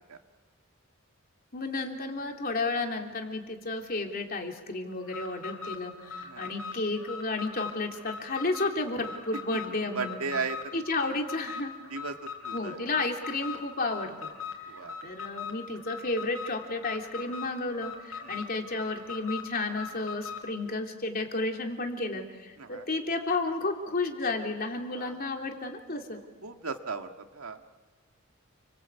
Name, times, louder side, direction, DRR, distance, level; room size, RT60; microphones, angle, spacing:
voice 1, 1.5-10.2 10.7-11.7 12.5-14.3 14.6-26.2, left 2 dB, 45° left, 2 dB, 3.2 m, -32 dB
Alarm, 5.0-20.5, left 5 dB, 80° left, 5.5 m, -40 dB
voice 2, 6.2-6.5 9.9-10.8 11.1-11.2 11.9-12.8 14.7-15.0 18.2-18.4 22.6-22.9 24.8-25.2 26.1-27.6, right 4 dB, 90° right, 5 dB, 2.0 m, -37 dB
29.5 x 23.5 x 8.3 m, 1.4 s
head